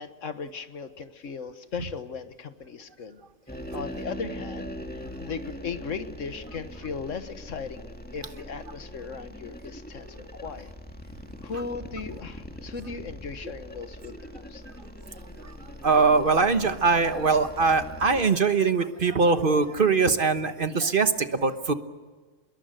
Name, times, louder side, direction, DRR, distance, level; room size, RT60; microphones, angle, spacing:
voice 1, 0.0-3.2 3.7-10.7 11.4-14.6, left 5 dB, 85° left, 10 dB, 1.7 m, -37 dB
sound 1, 3.5-18.3, equal, 5° left, 2.0 m, -41 dB
voice 2, 15.8-21.7, right 4 dB, 45° right, 9 dB, 1.3 m, -22 dB
25.5 x 21.5 x 7.8 m, 1.4 s
omnidirectional pair, 1.3 m